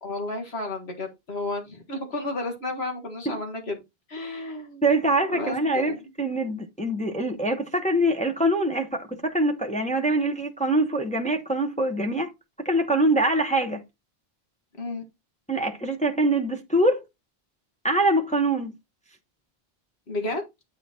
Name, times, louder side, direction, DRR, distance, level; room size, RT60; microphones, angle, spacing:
voice 1, 0.0-3.8 4.1-4.8 5.3-6.0 14.8-15.0 20.1-20.4, left 2 dB, 85° left, 2.0 m, -32 dB
voice 2, 4.8-12.3 12.6-13.8 15.5-17.0 17.8-18.7, right 1 dB, 5° left, 0.9 m, -24 dB
8.7 x 3.8 x 4.3 m
omnidirectional pair, 1.0 m